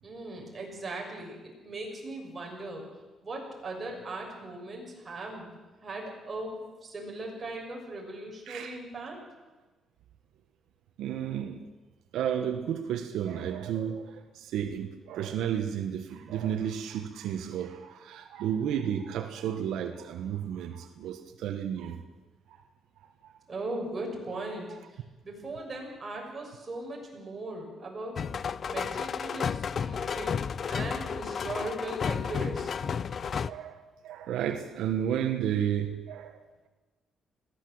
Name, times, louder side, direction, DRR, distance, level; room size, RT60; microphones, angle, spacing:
voice 1, 0.0-1.4 1.6-2.8 3.2-5.5 5.8-9.2 23.5-28.2 28.7-32.8, right 2 dB, 25° right, -1 dB, 6.6 m, -38 dB
voice 2, 11.0-11.6 12.1-22.0 22.5-22.6 23.2-23.3 33.5-36.4, right 9 dB, 85° right, 6 dB, 1.4 m, -32 dB
sound 1, 28.2-33.5, left 6 dB, 45° left, 0.6 m, -32 dB
21.0 x 16.0 x 7.9 m, 1.2 s
cardioid pair, 125°, 0 cm